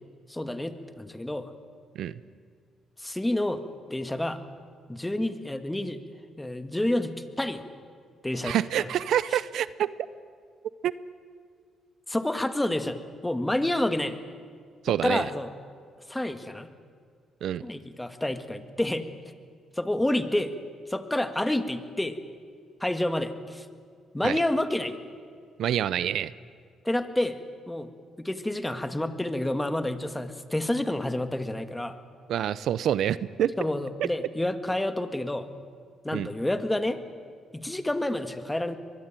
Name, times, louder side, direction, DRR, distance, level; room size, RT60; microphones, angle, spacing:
voice 1, 0.3-1.5 3.0-3.6 3.9-4.4 4.9-6.0 6.4-7.6 8.2-8.9 12.1-14.2 15.0-15.5 16.1-16.7 17.6-19.0 19.8-20.5 20.9-22.1 22.8-23.7 24.1-25.0 26.8-27.4 27.7-27.9 28.2-32.0 33.6-35.5 36.0-37.0 37.5-38.7, left 1 dB, 10° left, 9 dB, 1.8 m, -29 dB
voice 2, 8.4-9.9 10.8-10.9 14.8-15.3 17.4-17.6 24.2-24.4 25.6-26.3 32.3-33.5 34.0-34.1 36.1-36.3, right 10 dB, 75° right, 17 dB, 0.7 m, -26 dB
23.5 x 21.5 x 9.1 m, 2.1 s
cardioid pair, 90°, 0 cm